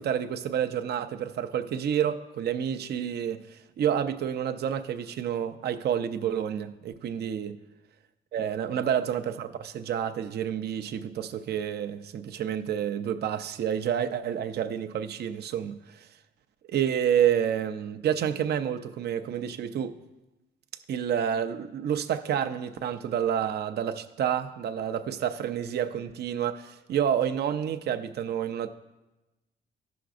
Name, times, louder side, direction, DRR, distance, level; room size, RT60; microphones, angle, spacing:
voice 1, 0.0-7.6 8.3-16.1 16.7-20.0 20.9-28.7, right 9 dB, 55° right, 0.5 m, -29 dB
14.5 x 5.9 x 2.5 m
cardioid pair, 90°, 20 cm